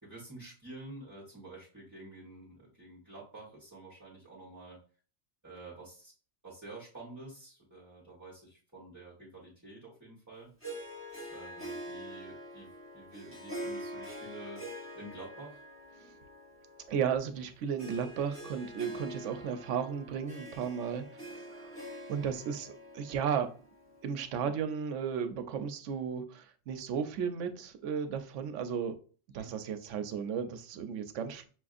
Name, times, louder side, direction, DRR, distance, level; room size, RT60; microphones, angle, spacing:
voice 1, 0.0-4.8 5.4-6.1 6.4-10.5 11.3-14.6 14.9-15.6 29.3-29.6, right 2 dB, 15° right, 1.0 m, -49 dB
Harp, 10.6-24.2, right 1 dB, 10° left, 0.9 m, -45 dB
voice 2, 16.9-23.5 24.0-29.0 29.3-31.5, right 7 dB, 90° right, 0.9 m, -34 dB
5.8 x 2.5 x 2.4 m
omnidirectional pair, 1.2 m